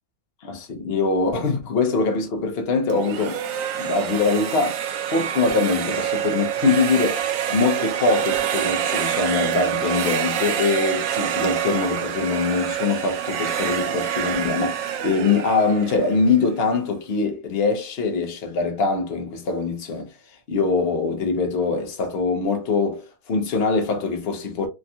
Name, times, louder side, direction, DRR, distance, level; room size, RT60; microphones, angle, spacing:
voice 1, 0.4-3.4 3.8-4.8 5.1-20.1 20.5-24.7, left 4 dB, 50° left, 0.8 m, -23 dB
sound 1, 2.9-16.7, right 10 dB, 70° right, 0.9 m, -26 dB
3.5 x 2.3 x 2.6 m
omnidirectional pair, 1.6 m